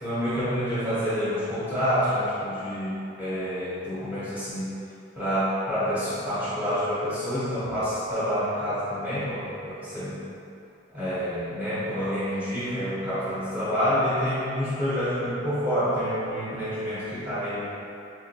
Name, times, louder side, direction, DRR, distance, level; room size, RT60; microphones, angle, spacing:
voice 1, 0.0-4.7 5.2-10.4 10.9-17.7, equal, 10° right, -16 dB, 0.9 m, -28 dB
4.5 x 2.9 x 2.5 m, 2.7 s
head